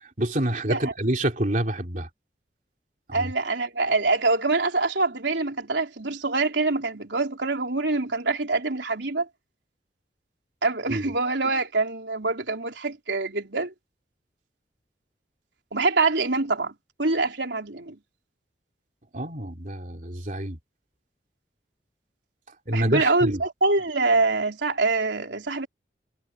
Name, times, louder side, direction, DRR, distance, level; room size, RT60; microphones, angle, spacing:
voice 1, 0.2-2.1 3.1-3.3 10.9-11.0 19.1-20.6 22.7-23.4, right 1 dB, 45° right, 3.4 m, -27 dB
voice 2, 3.1-9.3 10.6-13.7 15.7-16.7 17.0-18.0 22.7-25.7, right 3 dB, 85° right, 3.7 m, -25 dB
head